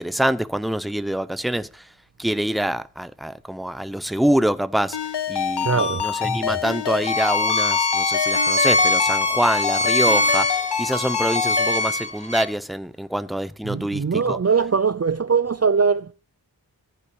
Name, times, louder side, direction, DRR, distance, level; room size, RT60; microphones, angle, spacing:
voice 1, 0.0-1.8 2.2-5.0 5.3-14.4, right 1 dB, ahead, 0.8 m, -25 dB
Ringtone, 4.9-11.8, left 8 dB, 85° left, 0.8 m, -26 dB
voice 2, 5.6-6.1 13.6-16.1, right 5 dB, 40° right, 0.5 m, -21 dB
Bowed string instrument, 7.0-12.5, left 2 dB, 15° left, 1.9 m, -22 dB
14.5 x 5.7 x 8.6 m
wide cardioid pair, 60°, 40 cm